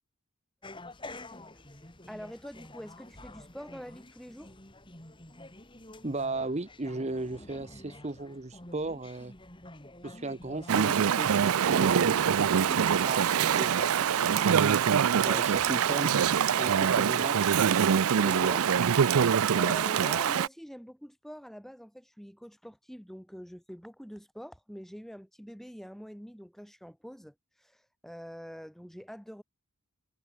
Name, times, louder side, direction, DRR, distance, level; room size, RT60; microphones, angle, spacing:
sound 1, 0.6-17.2, left 2 dB, 20° left, 3.3 m, -49 dB
voice 1, 2.1-4.6 18.1-18.6 19.1-29.4, equal, ahead, 7.9 m, -45 dB
voice 2, 6.0-9.3 10.0-14.4 15.2-16.2 16.6-17.6 18.2-18.6, right 2 dB, 30° right, 0.8 m, -36 dB
Chatter / Stream, 10.7-20.5, right 8 dB, 75° right, 0.5 m, -24 dB
head